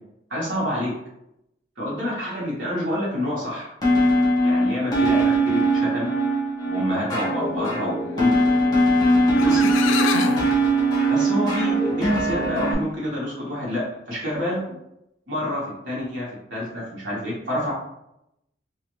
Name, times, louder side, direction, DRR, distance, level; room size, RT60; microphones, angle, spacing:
voice 1, 0.3-0.9 1.8-3.7 4.4-6.1 6.6-8.4 9.3-9.9 11.1-14.8 15.3-17.7, left 1 dB, 75° right, -6 dB, 1.2 m, -28 dB
sound 1, 3.8-12.7, right 1 dB, 20° left, 0.8 m, -21 dB
sound 2, 9.0-9.1 9.4-10.5, left 6 dB, 85° left, 0.3 m, -26 dB
2.6 x 2.6 x 3.0 m, 0.83 s
head